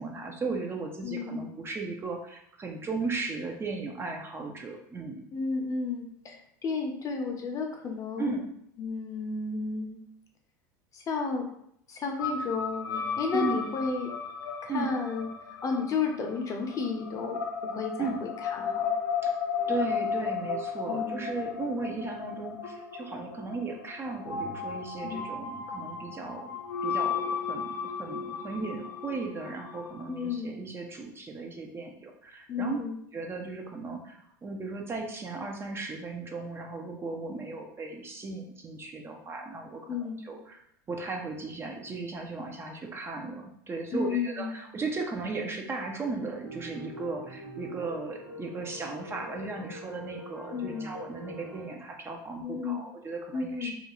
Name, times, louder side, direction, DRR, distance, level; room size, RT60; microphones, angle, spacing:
voice 1, 0.0-5.2 8.2-8.5 13.3-13.6 14.7-14.9 18.0-18.2 19.2-19.3 19.7-26.5 26.8-32.8 33.1-40.6 40.9-53.7, right 3 dB, 25° right, 2 dB, 0.4 m, -36 dB
voice 2, 1.0-1.4 5.3-8.4 8.8-10.0 10.9-11.5 11.9-14.1 14.6-15.3 15.6-17.4 17.7-18.8 20.9-21.2 25.0-25.2 30.1-30.5 32.5-33.0 39.9-40.2 43.9-44.5 50.5-50.9 52.4-52.8 53.3-53.7, left 4 dB, 35° left, 2 dB, 0.6 m, -32 dB
sound 1, 12.2-30.3, left 6 dB, 85° left, 0.4 m, -34 dB
sound 2, 46.4-51.7, equal, 75° right, 1.0 m, -43 dB
2.4 x 2.2 x 2.9 m, 0.70 s
hypercardioid pair, 90°, 10 cm